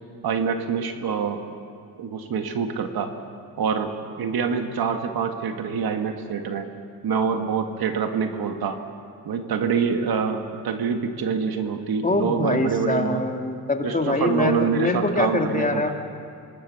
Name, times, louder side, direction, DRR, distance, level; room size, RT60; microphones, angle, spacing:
voice 1, 0.2-1.4 2.0-3.1 3.6-3.9 4.2-6.7 7.0-8.8 9.3-13.2 13.8-15.9, right 6 dB, 65° right, 5 dB, 1.9 m, -25 dB
voice 2, 12.0-15.9, left 2 dB, 20° left, 3 dB, 2.4 m, -24 dB
25.5 x 19.0 x 7.1 m, 2.4 s
cardioid pair, 75°, 39 cm